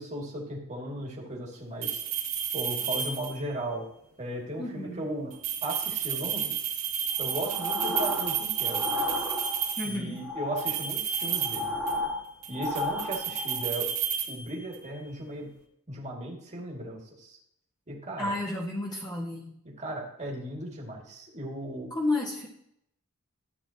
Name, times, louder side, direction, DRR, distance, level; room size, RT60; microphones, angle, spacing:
voice 1, 0.0-2.0 2.5-3.9 4.2-5.4 5.6-6.6 7.2-9.0 9.8-11.8 12.5-13.9 14.3-15.5 15.9-17.4 17.9-18.4 19.6-21.9, right 1 dB, 30° right, -2 dB, 2.2 m, -36 dB
sound 1, 1.8-3.6 5.3-10.0 10.6-12.1 12.4-14.9, right 8 dB, 75° right, 1.8 m, -32 dB
voice 2, 4.6-5.1 9.8-10.2 18.2-19.6 21.9-22.5, left 2 dB, 20° left, -5 dB, 1.6 m, -31 dB
sound 2, 7.2-9.8 10.2-13.7, left 2 dB, 5° right, 1.8 m, -33 dB
13.5 x 8.7 x 2.9 m, 0.75 s
head